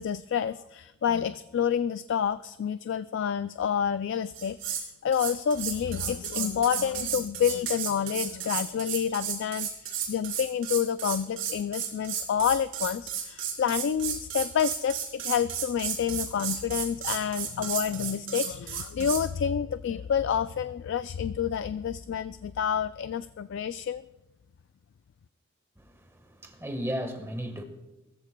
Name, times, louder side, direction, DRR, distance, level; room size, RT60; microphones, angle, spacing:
voice 1, 0.0-9.7 10.1-24.0, left 8 dB, 60° left, 0.3 m, -29 dB
sound 1, 4.3-4.8 5.1-19.2, right 8 dB, 65° right, 3.7 m, -33 dB
voice 2, 25.8-27.6, equal, 10° right, 1.4 m, -35 dB
20.5 x 14.0 x 2.2 m
head